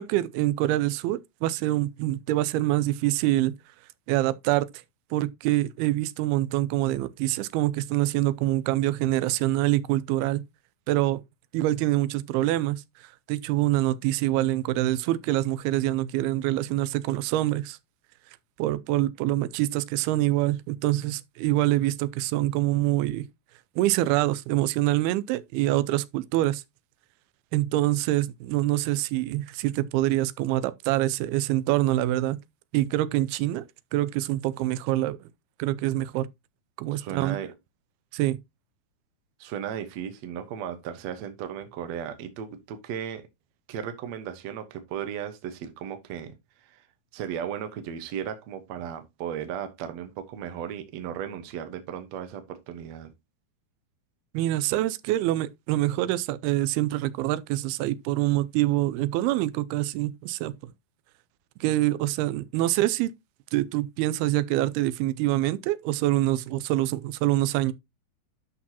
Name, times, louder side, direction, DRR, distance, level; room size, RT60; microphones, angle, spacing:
voice 1, 0.0-3.5 4.1-4.7 5.1-10.4 10.9-11.2 11.5-17.8 18.6-23.3 23.8-26.6 27.5-32.4 32.7-35.3 35.6-36.3 36.8-37.4 38.1-38.4 54.3-60.7 61.6-63.1 63.5-67.7, right 15 dB, 90° right, 2.5 m, -25 dB
voice 2, 36.9-37.5 39.4-43.3 43.7-46.9 47.1-53.1, right 9 dB, 65° right, 1.8 m, -36 dB
11.0 x 6.0 x 2.8 m
omnidirectional pair, 4.4 m